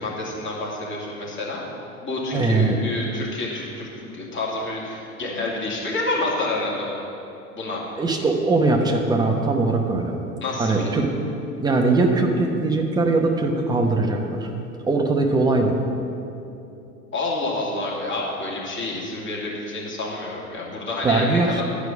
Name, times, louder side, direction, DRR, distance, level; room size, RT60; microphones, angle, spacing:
voice 1, 0.0-1.6 2.0-7.0 7.5-7.8 10.4-10.9 17.1-21.6, left 2 dB, 25° left, -4 dB, 2.5 m, -28 dB
voice 2, 2.3-2.8 8.0-10.2 10.6-11.1 11.6-14.5 14.8-15.8 21.0-21.5, right 3 dB, 10° right, 2 dB, 0.9 m, -21 dB
11.0 x 5.0 x 7.2 m, 2.7 s
figure-of-eight pair, 80°, 43 cm